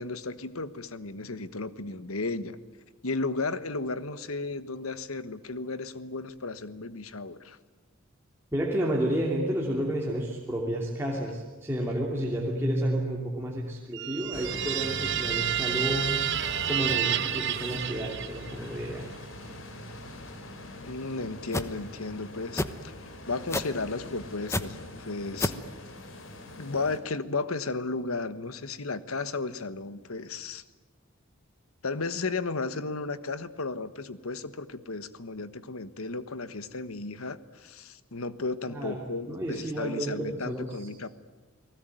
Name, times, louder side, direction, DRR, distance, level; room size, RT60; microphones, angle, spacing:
voice 1, 0.0-2.6 3.0-7.6 20.8-25.6 26.6-30.6 31.8-41.1, left 3 dB, 90° left, 13 dB, 1.4 m, -34 dB
voice 2, 8.5-16.2 16.7-19.1 38.7-39.0 39.3-40.9, right 1 dB, 10° right, -3 dB, 2.9 m, -31 dB
sound 1, 13.9-18.7, right 11 dB, 55° right, 1.1 m, -30 dB
sound 2, 14.3-27.0, left 1 dB, 65° left, 3.6 m, -42 dB
sound 3, 21.5-21.7 22.6-22.8 23.5-23.8 24.5-24.6 25.4-25.6, left 2 dB, 15° left, 1.1 m, -28 dB
30.0 x 19.0 x 9.2 m, 1.3 s
head